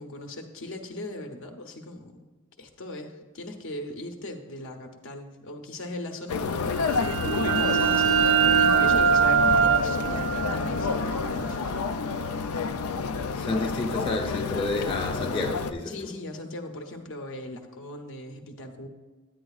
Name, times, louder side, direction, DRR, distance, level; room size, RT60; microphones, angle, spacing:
voice 1, 0.0-2.3 2.6-11.8 15.8-18.9, left 1 dB, 65° left, 3 dB, 0.7 m, -39 dB
sound 1, 6.3-15.7, left 5 dB, 90° left, 0.4 m, -29 dB
sound 2, 6.8-12.3, right 7 dB, 70° right, 0.4 m, -23 dB
voice 2, 13.4-15.9, left 2 dB, 25° left, 0 dB, 0.7 m, -30 dB
9.6 x 9.1 x 2.3 m, 1.3 s
head